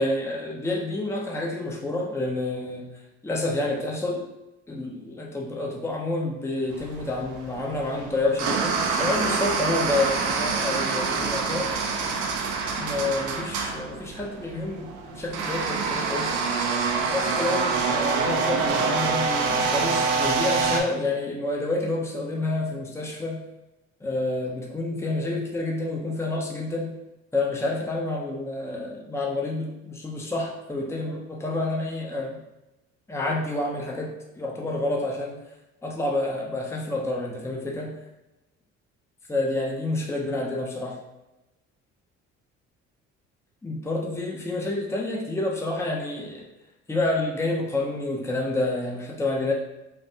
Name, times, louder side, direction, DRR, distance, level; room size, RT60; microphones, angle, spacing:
voice 1, 0.0-2.9 3.2-4.2 4.7-11.7 12.8-16.4 17.0-23.4 24.0-26.9 27.3-32.4 33.1-34.1 34.3-35.4 35.8-38.0 39.3-41.0 43.6-46.5 46.9-49.5, left 2 dB, 10° left, -1 dB, 0.6 m, -28 dB
sound 1, 6.7-20.8, right 4 dB, 65° right, 0.6 m, -26 dB
3.3 x 2.5 x 2.8 m, 0.96 s
hypercardioid pair, 60°, 33 cm